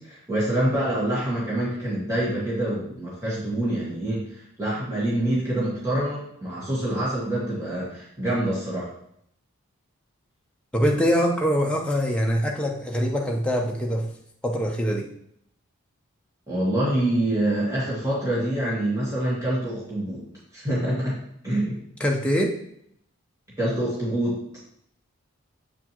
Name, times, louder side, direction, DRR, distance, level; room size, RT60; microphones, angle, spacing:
voice 1, 0.0-8.9 16.5-20.2 20.5-21.2 21.4-21.8 23.6-24.4, right 1 dB, 15° right, -7 dB, 1.9 m, -26 dB
voice 2, 10.7-14.1 14.4-15.1 22.0-22.6, equal, 5° left, 0 dB, 0.7 m, -23 dB
7.7 x 4.9 x 2.9 m, 0.71 s
head